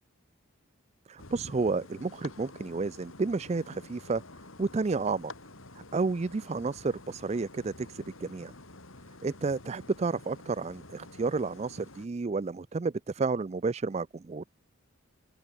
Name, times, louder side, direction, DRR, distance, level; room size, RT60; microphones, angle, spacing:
voice 1, 1.1-4.2 4.6-5.3 5.9-8.5 9.2-14.5, right 4 dB, 30° right, 0.3 m, -31 dB
sound 1, 1.2-12.1, left 2 dB, 70° left, 3.6 m, -49 dB
open air
head